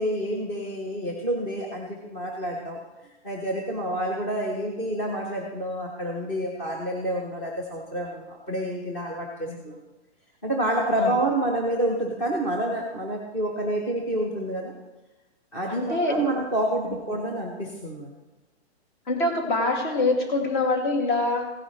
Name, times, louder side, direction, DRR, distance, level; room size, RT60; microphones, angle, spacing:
voice 1, 0.0-2.8 3.2-9.8 10.4-14.7 15.5-18.1, right 1 dB, 10° left, -1 dB, 0.7 m, -28 dB
voice 2, 15.7-16.2 19.1-21.5, left 2 dB, 45° left, 2 dB, 2.3 m, -24 dB
16.0 x 9.9 x 3.1 m, 1.1 s
hypercardioid pair, 175°, 34 cm